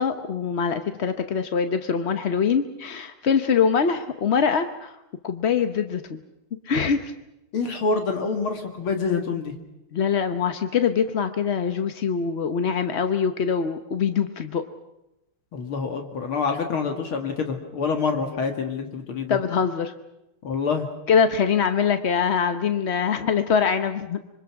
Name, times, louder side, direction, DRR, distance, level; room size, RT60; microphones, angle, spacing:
voice 1, 0.0-4.9 5.2-6.2 6.7-7.1 9.9-14.6 19.3-19.9 21.1-24.2, left 6 dB, 55° left, 8 dB, 0.7 m, -23 dB
voice 2, 7.5-9.5 15.5-19.4 20.4-20.9, left 5 dB, 75° left, 4 dB, 2.6 m, -26 dB
25.5 x 24.0 x 5.9 m, 0.91 s
omnidirectional pair, 2.4 m